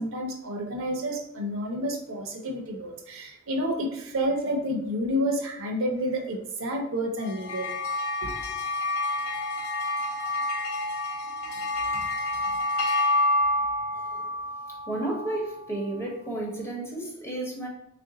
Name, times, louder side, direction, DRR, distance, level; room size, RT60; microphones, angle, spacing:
voice 1, 0.0-7.7 8.2-8.3, equal, 65° right, 2 dB, 0.7 m, -29 dB
sound 1, 7.2-15.8, left 1 dB, 90° left, 0.5 m, -28 dB
voice 2, 14.9-17.7, right 2 dB, 10° left, -1 dB, 0.8 m, -32 dB
3.3 x 2.5 x 3.9 m, 0.75 s
head